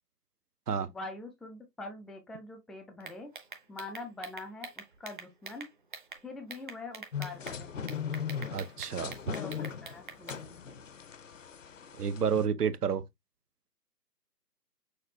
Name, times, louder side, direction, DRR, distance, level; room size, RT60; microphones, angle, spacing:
voice 1, 0.9-3.3 3.7-5.7 6.2-7.7 9.3-10.6, left 2 dB, ahead, 0.4 m, -44 dB
sound 1, 3.0-6.2 6.5-7.6 7.9-10.4, right 5 dB, 30° right, 0.7 m, -45 dB
sound 2, 7.1-12.5, left 7 dB, 50° left, 0.6 m, -39 dB
voice 2, 8.5-9.1 12.0-13.0, right 7 dB, 70° right, 0.8 m, -30 dB
6.4 x 2.3 x 2.9 m
figure-of-eight pair, 150°, 49 cm